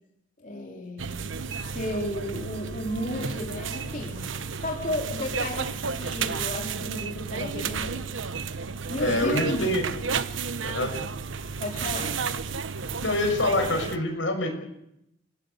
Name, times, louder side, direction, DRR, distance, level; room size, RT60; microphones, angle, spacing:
voice 1, 0.4-1.2 1.5-4.1 4.6-8.0 8.9-9.8 11.6-12.2, left 1 dB, 45° left, -1 dB, 3.9 m, -33 dB
sound 1, 1.0-14.0, right 5 dB, 85° right, 1.2 m, -32 dB
voice 2, 9.0-9.8 10.6-10.9 13.0-14.5, left 1 dB, 80° left, 4 dB, 6.5 m, -25 dB
30.0 x 16.0 x 8.5 m, 0.80 s
head